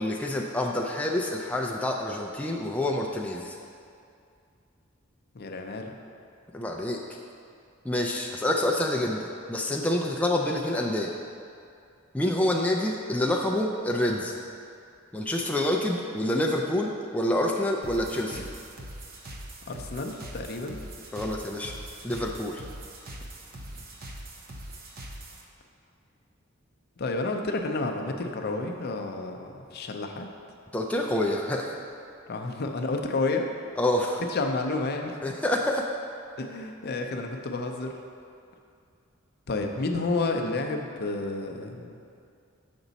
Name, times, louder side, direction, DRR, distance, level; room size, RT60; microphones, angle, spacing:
voice 1, 0.0-3.6 6.5-7.0 7.8-11.1 12.1-14.4 15.1-18.4 21.1-21.8 22.0-22.6 30.7-31.7 33.8-34.2 35.2-35.9, left 1 dB, 5° left, -1 dB, 0.4 m, -27 dB
voice 2, 5.3-6.0 19.7-20.8 23.7-23.8 27.0-30.3 32.3-33.4 34.3-35.2 36.4-37.9 39.5-42.0, left 3 dB, 50° left, 3 dB, 0.5 m, -30 dB
sound 1, 17.8-25.4, right 1 dB, 50° right, 0.7 m, -42 dB
7.1 x 5.2 x 4.0 m, 2.4 s
head